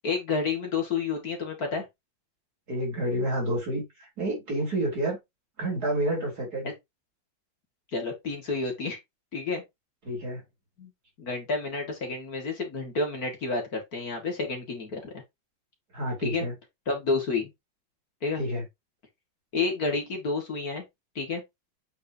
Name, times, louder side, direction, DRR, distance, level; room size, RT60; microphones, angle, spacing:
voice 1, 0.0-1.8 7.9-9.0 9.3-9.6 10.8-10.9 11.2-15.2 16.2-16.4 16.9-17.5 18.2-18.4 19.5-20.8 21.2-21.4, left 4 dB, 50° left, 2.2 m, -30 dB
voice 2, 2.7-5.2 5.6-6.7 10.0-10.4 15.9-16.5 18.3-18.6, right 1 dB, 50° right, 4.2 m, -29 dB
8.1 x 5.2 x 2.8 m
omnidirectional pair, 2.2 m